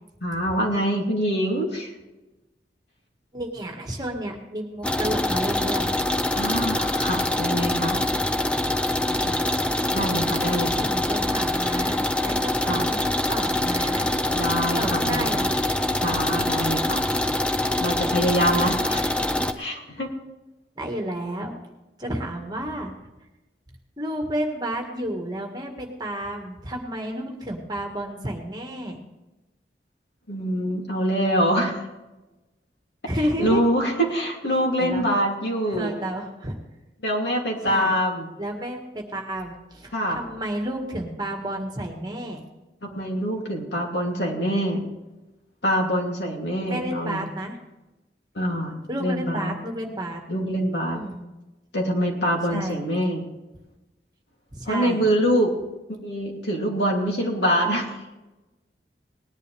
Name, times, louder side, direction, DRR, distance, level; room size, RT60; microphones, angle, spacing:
voice 1, 0.2-1.9 6.3-8.0 9.2-9.4 9.9-10.9 12.7-12.8 14.3-15.4 16.0-17.0 17.8-19.0 19.6-20.1 30.3-31.8 33.4-35.9 37.0-38.3 39.9-40.2 42.8-44.9 45.6-47.3 48.3-49.5 50.3-51.0 51.7-53.3 54.7-55.5 56.0-57.9, equal, 75° left, 0 dB, 2.9 m, -25 dB
voice 2, 3.3-5.9 10.7-14.1 14.8-15.6 20.8-21.5 22.0-22.9 24.0-29.0 33.1-33.6 34.8-35.1 35.7-36.6 37.6-38.0 38.4-42.4 46.7-47.6 48.9-50.2 50.9-51.2 52.5-52.8 54.5-55.1, right 1 dB, 25° right, 2 dB, 1.8 m, -31 dB
sound 1, 4.8-19.5, left 1 dB, 5° left, 0.6 m, -24 dB
19.5 x 11.0 x 3.4 m, 1.0 s
head